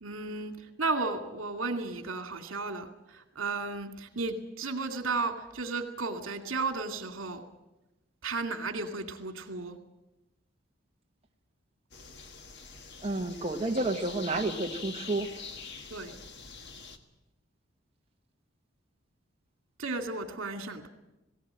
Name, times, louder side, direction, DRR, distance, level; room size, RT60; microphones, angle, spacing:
voice 1, 0.0-7.4 8.2-9.8 15.9-16.1 19.8-20.9, right 3 dB, 75° right, 6 dB, 2.4 m, -34 dB
sound 1, 11.9-17.0, left 5 dB, 60° left, 1.7 m, -45 dB
voice 2, 13.0-15.4, right 2 dB, 30° right, 2 dB, 1.2 m, -30 dB
19.0 x 18.0 x 8.9 m, 0.98 s
head